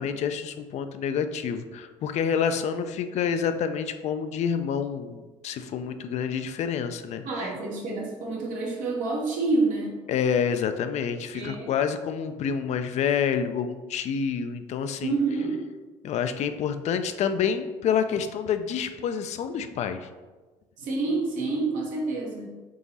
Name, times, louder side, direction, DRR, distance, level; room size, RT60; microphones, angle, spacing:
voice 1, 0.0-7.5 10.1-15.1 16.0-20.1, left 7 dB, 60° left, 9 dB, 0.4 m, -28 dB
voice 2, 7.2-9.9 11.3-11.7 15.0-15.6 20.8-22.6, right 3 dB, 75° right, -1 dB, 1.1 m, -28 dB
3.7 x 2.9 x 4.0 m, 1.3 s
supercardioid pair, 80°, 13 cm